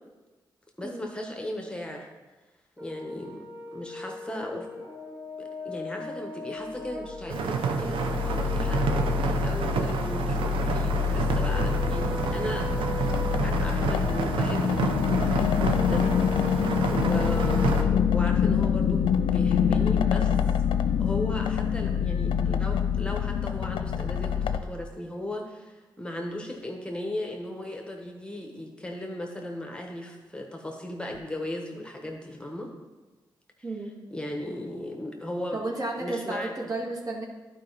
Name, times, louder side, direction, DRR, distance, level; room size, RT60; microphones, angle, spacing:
voice 1, 0.8-2.1 2.8-3.4 3.7-4.9 5.4-12.7 13.0-14.8 15.2-20.4 21.0-32.7 34.1-35.6 36.0-36.5, left 1 dB, 10° left, 1 dB, 1.3 m, -37 dB
Brass instrument, 2.8-9.2 11.3-17.9, equal, 25° right, 2.8 m, -38 dB
sound 1, 7.2-24.6, left 8 dB, 80° left, 0.4 m, -26 dB
sound 2, 7.3-17.8, right 5 dB, 80° right, 0.7 m, -29 dB
voice 2, 35.5-37.2, right 2 dB, 45° right, -2 dB, 2.2 m, -32 dB
11.5 x 5.0 x 4.1 m, 1.2 s
supercardioid pair, 50°, 9 cm